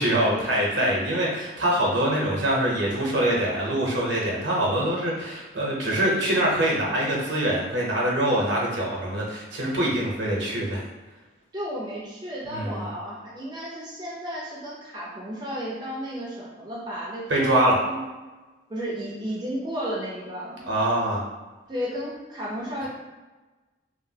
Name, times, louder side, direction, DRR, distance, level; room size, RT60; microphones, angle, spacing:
voice 1, 0.0-10.8 12.5-12.8 17.3-17.8 20.7-21.2, right 1 dB, 85° right, -3 dB, 0.7 m, -24 dB
voice 2, 11.5-18.1 18.7-20.6 21.7-22.9, equal, 25° right, -5 dB, 0.5 m, -33 dB
3.0 x 2.4 x 2.7 m, 1.2 s
head